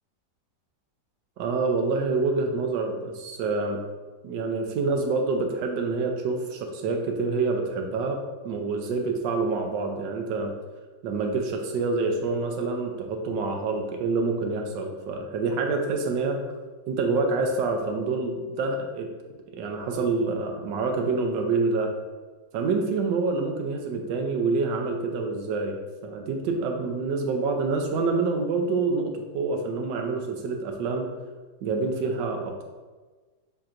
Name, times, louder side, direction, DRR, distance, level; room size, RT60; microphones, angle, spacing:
voice 1, 1.4-3.8 4.2-10.5 11.0-16.4 16.9-19.1 19.5-21.9 22.5-31.1 31.6-32.6, right 3 dB, 90° right, 3 dB, 1.3 m, -27 dB
7.3 x 2.8 x 2.5 m, 1.3 s
omnidirectional pair, 1.9 m